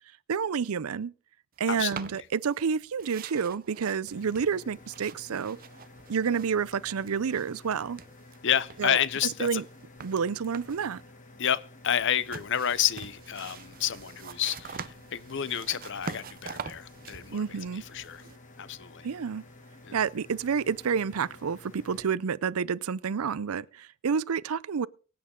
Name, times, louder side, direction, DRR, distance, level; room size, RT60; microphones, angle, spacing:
voice 1, 0.3-1.1 1.6-5.6 6.1-8.0 8.8-9.6 10.0-11.0 17.3-17.8 19.0-19.4 19.9-24.9, right 6 dB, 80° right, 0.5 m, -29 dB
voice 2, 1.7-2.0 8.4-9.6 11.4-17.4 17.9-18.2 18.6-19.1 19.8-20.0, left 9 dB, 60° left, 0.6 m, -30 dB
sound 1, 1.8-2.7 3.0-6.7 7.0-8.4 8.7-10.9 12.1-18.4, right 6 dB, 40° right, 0.6 m, -44 dB
sound 2, 4.1-22.1, left 2 dB, 35° left, 2.1 m, -52 dB
23.5 x 8.7 x 3.8 m
head